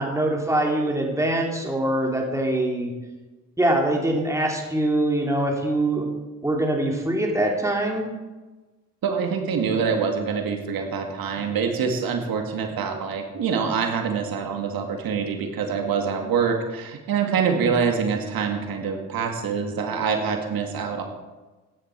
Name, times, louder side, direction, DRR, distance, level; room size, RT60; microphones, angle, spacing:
voice 1, 0.0-2.9 3.6-6.1 6.4-8.0, right 1 dB, 10° right, 0 dB, 2.9 m, -23 dB
voice 2, 9.0-21.0, right 6 dB, 75° right, 3 dB, 2.1 m, -25 dB
14.5 x 10.5 x 4.7 m, 1.2 s
cardioid pair, 105°, 36 cm